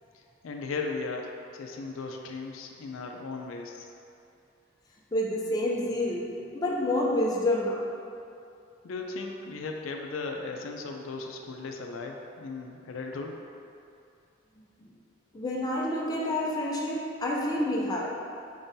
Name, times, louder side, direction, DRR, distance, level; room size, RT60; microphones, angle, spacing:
voice 1, 0.4-3.9 8.8-13.4, left 3 dB, 80° left, 2 dB, 0.4 m, -36 dB
voice 2, 5.1-7.8 15.3-18.1, left 1 dB, 20° left, -4 dB, 0.5 m, -28 dB
4.8 x 3.7 x 2.7 m, 2.5 s
head